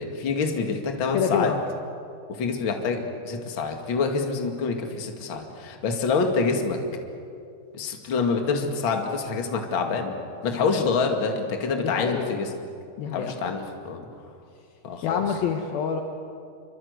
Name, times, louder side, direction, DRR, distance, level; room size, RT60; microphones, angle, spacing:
voice 1, 0.0-1.5 2.3-6.8 7.7-10.1 10.4-12.5 13.1-14.1 14.8-15.2, left 4 dB, 40° left, 4 dB, 2.2 m, -26 dB
voice 2, 1.1-1.6 11.8-12.3 13.0-13.5 15.0-16.0, left 7 dB, 70° left, 4 dB, 2.8 m, -27 dB
27.0 x 25.0 x 8.1 m, 2.4 s
omnidirectional pair, 4.9 m